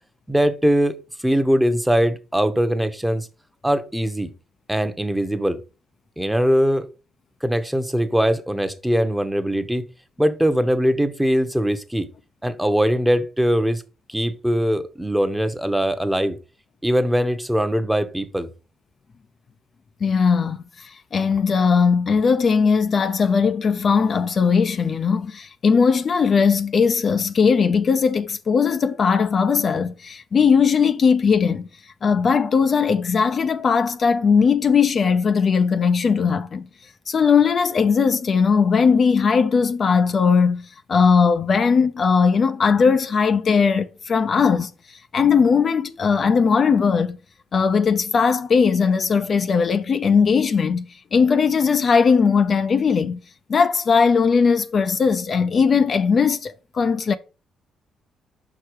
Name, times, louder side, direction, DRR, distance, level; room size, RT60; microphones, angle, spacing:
voice 1, 0.3-3.3 3.6-4.3 4.7-5.6 6.2-6.9 7.4-9.8 10.2-12.1 12.4-13.8 14.1-16.4 16.8-18.5, equal, 5° right, 0.8 m, -21 dB
voice 2, 20.0-31.7 32.0-36.7 37.1-44.7 45.1-47.2 47.5-50.9 51.1-53.2 53.5-57.2, left 5 dB, 45° left, 0.5 m, -19 dB
5.6 x 4.8 x 4.6 m
cardioid pair, 90°, 0 cm